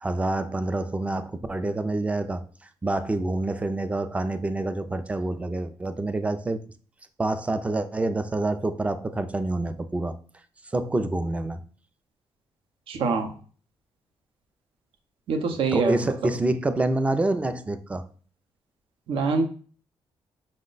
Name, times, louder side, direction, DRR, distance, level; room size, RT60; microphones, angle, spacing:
voice 1, 0.0-2.4 2.8-6.6 7.2-10.2 10.7-11.6 15.7-18.0, right 2 dB, 15° right, 10 dB, 0.4 m, -27 dB
voice 2, 12.9-13.3 15.3-16.0 19.1-19.5, right 4 dB, 75° right, 5 dB, 0.7 m, -24 dB
5.1 x 2.1 x 3.8 m, 0.42 s
cardioid pair, 115°, 9 cm